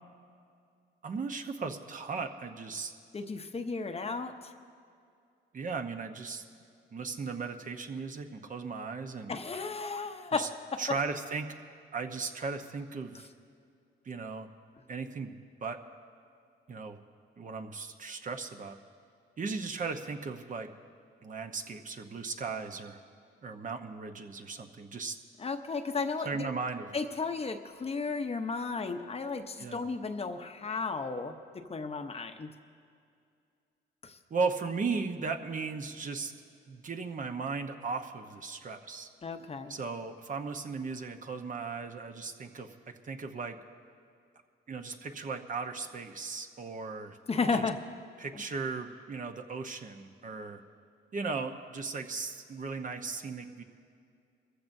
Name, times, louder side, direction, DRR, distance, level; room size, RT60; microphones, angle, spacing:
voice 1, 1.0-2.9 5.5-6.4 6.9-9.3 10.3-10.5 10.8-11.5 11.9-13.3 14.0-14.5 14.9-15.3 15.6-15.8 16.7-17.0 17.4-18.8 19.4-20.7 21.2-23.0 23.4-25.2 26.2-26.9 29.6-29.8 34.3-36.3 36.7-39.1 39.7-42.7 43.0-43.6 44.7-47.2 47.5-47.6 48.2-50.6 51.1-53.6, right 4 dB, 40° right, 6 dB, 1.0 m, -36 dB
voice 2, 3.1-4.5 9.3-10.8 25.4-26.5 26.9-32.5 34.0-34.2 39.2-39.8 47.3-47.8, left 4 dB, 30° left, 7 dB, 0.8 m, -34 dB
23.5 x 14.5 x 2.7 m, 2.3 s
cardioid pair, 90°, 20 cm